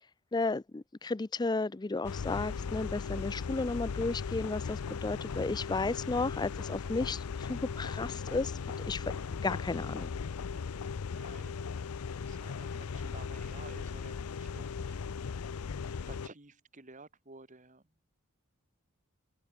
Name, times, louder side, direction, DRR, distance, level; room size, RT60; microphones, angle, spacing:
voice 1, 0.3-8.5 8.9-10.1, left 3 dB, 20° left, 0.4 m, -33 dB
sound 1, 2.0-16.3, left 5 dB, 85° left, 0.5 m, -38 dB
voice 2, 10.5-11.7 12.1-15.0 16.0-17.8, right 3 dB, 35° right, 2.0 m, -53 dB
head